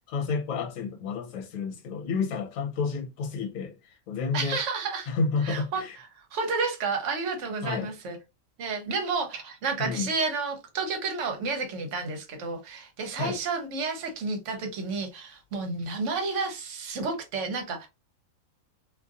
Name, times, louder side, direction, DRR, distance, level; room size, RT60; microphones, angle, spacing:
voice 1, 0.1-4.6 5.1-6.0 7.6-7.9 9.8-10.1 13.1-13.4, left 4 dB, 70° left, 1.1 m, -30 dB
voice 2, 4.3-5.1 5.4-8.2 8.6-17.9, right 4 dB, 60° right, 1.0 m, -31 dB
2.6 x 2.5 x 2.4 m
omnidirectional pair, 1.5 m